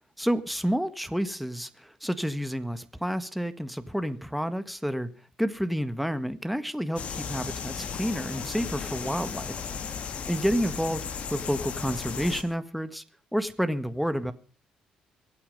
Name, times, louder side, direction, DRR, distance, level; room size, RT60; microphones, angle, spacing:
voice 1, 0.2-5.1 5.4-9.6 10.3-13.0 13.3-14.3, equal, ahead, 11 dB, 1.6 m, -29 dB
sound 1, 7.0-12.4, left 6 dB, 55° left, 2.2 m, -35 dB
23.5 x 8.8 x 5.4 m, 0.38 s
cardioid pair, 85°, 3 cm